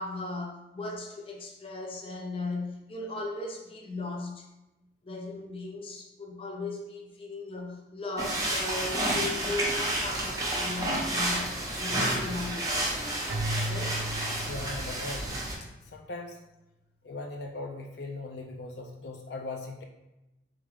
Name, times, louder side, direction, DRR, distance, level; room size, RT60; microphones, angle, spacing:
voice 1, 0.0-4.5 5.0-13.2 13.6-14.0, left 2 dB, 30° left, 0 dB, 0.7 m, -37 dB
sound 1, 8.2-15.5, right 1 dB, 20° right, 0.7 m, -30 dB
Keyboard (musical), 13.3-15.5, right 1 dB, 75° right, 0.5 m, -35 dB
voice 2, 14.4-15.4 15.9-16.4 17.0-19.8, left 2 dB, 70° left, 2 dB, 0.4 m, -39 dB
3.7 x 3.5 x 3.5 m, 0.96 s
head